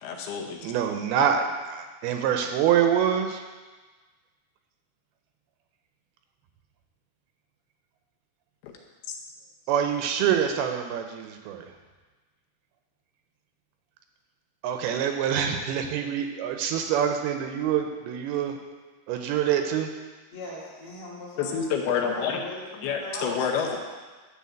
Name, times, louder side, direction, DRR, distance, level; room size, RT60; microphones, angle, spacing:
voice 1, 0.0-0.7 8.6-8.7 9.1-9.2 21.4-22.4 22.8-23.8, left 6 dB, 80° left, 1 dB, 2.7 m, -28 dB
voice 2, 0.6-3.4 9.7-11.7 14.6-18.6 19.1-19.9, right 8 dB, 80° right, 5 dB, 2.5 m, -25 dB
voice 3, 20.3-23.8, left 1 dB, 35° left, -8 dB, 2.9 m, -40 dB
11.5 x 3.9 x 7.5 m, 1.3 s
omnidirectional pair, 4.7 m